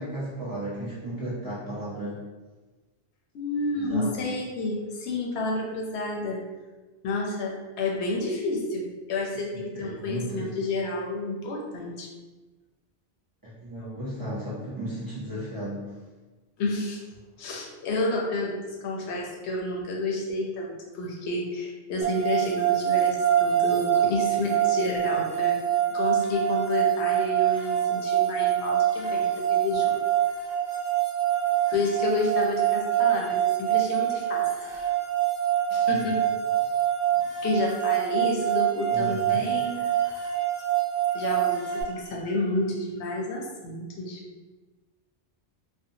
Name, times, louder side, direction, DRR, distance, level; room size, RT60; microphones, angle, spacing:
voice 1, 0.0-2.2 3.7-4.3 9.5-10.5 13.6-15.9 35.9-36.0 38.9-39.4, right 1 dB, 30° right, -9 dB, 0.4 m, -35 dB
voice 2, 3.3-6.4 7.0-12.1 16.6-17.0 17.4-25.6 25.9-30.0 31.7-34.5 35.7-36.2 37.1-40.4 41.1-44.2, left 2 dB, 80° left, -1 dB, 0.9 m, -30 dB
sound 1, 22.0-41.8, right 11 dB, 65° right, 0.8 m, -25 dB
2.6 x 2.2 x 2.7 m, 1.2 s
omnidirectional pair, 1.1 m